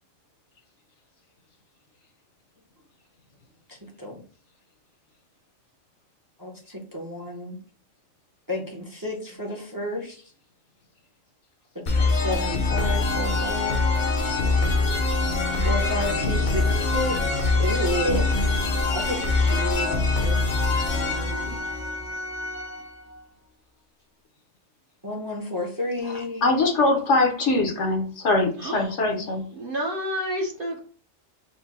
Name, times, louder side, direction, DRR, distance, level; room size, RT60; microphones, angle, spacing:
voice 1, 3.7-4.2 6.4-7.6 8.5-10.2 11.8-14.0 15.6-18.3 18.9-20.6 25.0-26.5, left 1 dB, 20° right, 0 dB, 0.7 m, -32 dB
sound 1, 11.9-22.5, left 3 dB, 45° left, 0.7 m, -24 dB
Organ, 12.7-23.3, left 1 dB, 70° right, 1.1 m, -34 dB
voice 2, 21.0-21.6 28.6-28.9 29.6-30.8, equal, 50° right, 1 dB, 0.9 m, -30 dB
voice 3, 26.1-29.4, left 2 dB, 65° left, 4 dB, 1.1 m, -22 dB
4.4 x 2.1 x 4.1 m, 0.42 s
omnidirectional pair, 1.3 m